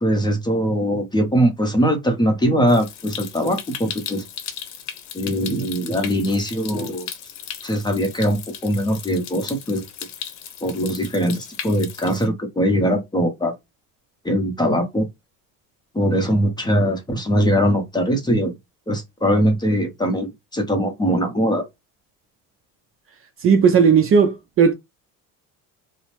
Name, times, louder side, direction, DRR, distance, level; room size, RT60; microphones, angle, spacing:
voice 1, 0.0-4.2 5.1-7.1 7.6-9.8 10.6-13.5 14.2-15.1 15.9-18.5 18.9-21.6, equal, 10° left, 0.7 m, -21 dB
Stream, 2.7-12.3, left 9 dB, 85° left, 0.8 m, -36 dB
voice 2, 23.4-24.7, right 6 dB, 35° right, 0.4 m, -15 dB
2.7 x 2.0 x 3.0 m
cardioid pair, 125°, 38 cm